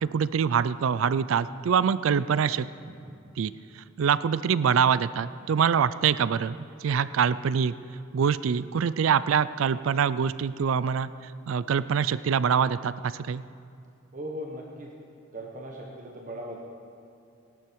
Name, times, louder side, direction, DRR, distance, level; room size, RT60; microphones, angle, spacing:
voice 1, 0.0-2.7 3.4-7.7 8.1-13.4, right 7 dB, 75° right, 16 dB, 0.4 m, -25 dB
voice 2, 14.1-14.9 15.3-16.6, equal, 40° right, -1 dB, 1.4 m, -39 dB
19.5 x 11.5 x 4.7 m, 2.5 s
head